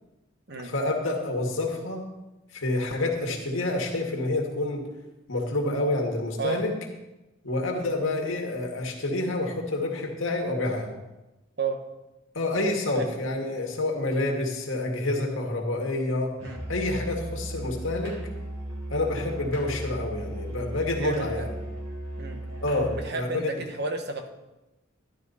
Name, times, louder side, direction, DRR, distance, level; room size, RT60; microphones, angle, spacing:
voice 1, 0.6-2.1 2.5-4.9 5.3-6.7 7.4-10.9 12.3-16.4 16.7-18.2 18.9-21.5 22.6-23.6, left 2 dB, 70° left, 1 dB, 2.2 m, -28 dB
Musical instrument, 16.4-23.1, right 1 dB, 85° right, 3.5 m, -36 dB
voice 2, 20.8-21.4 22.2-22.4 22.9-24.3, right 4 dB, 55° right, 6 dB, 1.3 m, -32 dB
12.5 x 12.0 x 4.2 m, 1.0 s
head